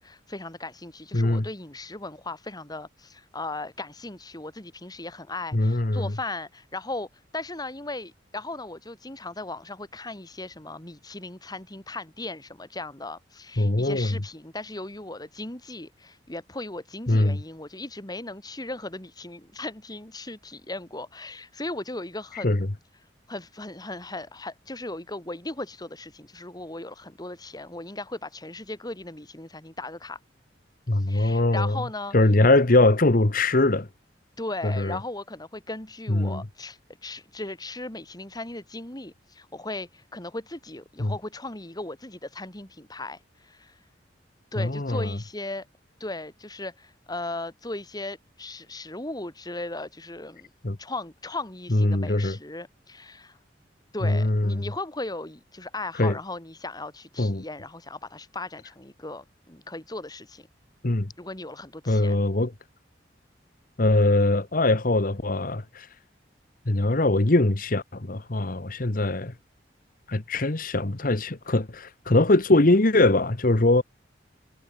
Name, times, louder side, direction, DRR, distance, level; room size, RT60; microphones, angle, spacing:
voice 1, 0.0-7.1 7.3-22.6 23.3-30.2 31.1-32.2 34.4-43.7 44.5-45.7 46.0-50.5 50.8-53.4 53.9-60.5 61.2-62.2, left 2 dB, 20° left, 3.0 m, -37 dB
voice 2, 1.1-1.5 5.5-6.1 13.6-14.2 17.1-17.4 22.3-22.7 30.9-31.8 32.1-33.9 34.6-35.0 36.1-36.4 41.0-41.1 44.6-45.1 50.6-50.8 51.7-52.4 54.0-54.7 55.9-56.2 57.2-57.4 60.8-61.1 61.9-62.5 63.8-65.9 66.7-69.3 70.1-73.8, left 2 dB, 50° left, 1.3 m, -22 dB
head